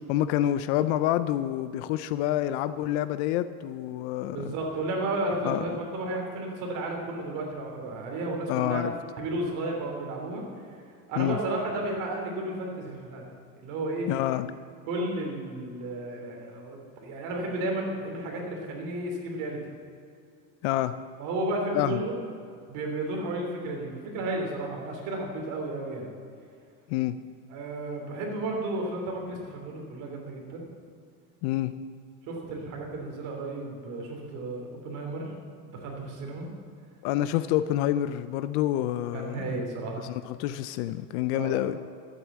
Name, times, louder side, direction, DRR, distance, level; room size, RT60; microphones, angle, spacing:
voice 1, 0.1-4.5 5.4-5.6 8.5-8.9 11.2-11.4 14.1-14.5 20.6-21.0 21.7-22.0 26.9-27.2 31.4-31.7 37.0-39.5 40.0-41.8, left 13 dB, 50° left, 13 dB, 0.5 m, -27 dB
voice 2, 4.3-8.8 9.2-10.4 11.1-13.2 13.6-14.1 14.9-19.6 21.2-22.2 22.7-26.1 27.5-30.6 32.3-35.3 35.7-36.5 39.1-40.0 41.3-41.6, right 2 dB, 45° right, 1 dB, 3.2 m, -33 dB
12.5 x 8.7 x 7.3 m, 2.4 s
supercardioid pair, 160°, 43 cm